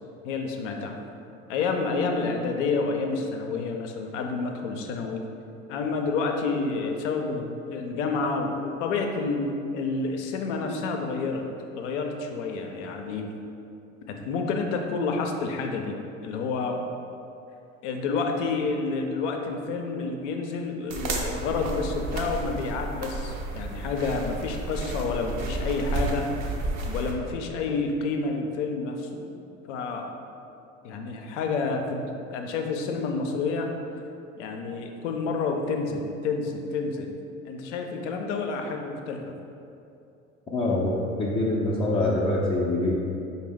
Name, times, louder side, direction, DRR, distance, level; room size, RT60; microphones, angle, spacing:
voice 1, 0.2-1.0 1.5-5.2 5.7-13.3 14.1-16.0 16.2-16.8 17.8-26.3 26.8-29.3 29.7-30.1 30.8-33.7 34.4-37.2 37.5-39.2, left 4 dB, 65° left, 3 dB, 0.6 m, -29 dB
sound 1, 20.9-27.1, right 2 dB, 45° right, 0.7 m, -31 dB
voice 2, 40.5-42.9, left 2 dB, 15° left, -6 dB, 0.5 m, -25 dB
5.1 x 2.2 x 3.4 m, 2.7 s
figure-of-eight pair, 70°, 38 cm